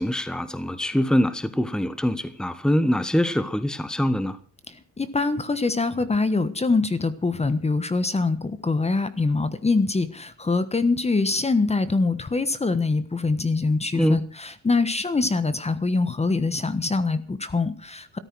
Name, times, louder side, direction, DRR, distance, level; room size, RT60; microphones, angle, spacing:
voice 1, 0.0-4.4 13.9-14.2, equal, ahead, 1.3 m, -24 dB
voice 2, 4.7-18.2, left 3 dB, 20° left, 1.3 m, -24 dB
14.0 x 13.0 x 6.2 m
cardioid pair, 90°, 30 cm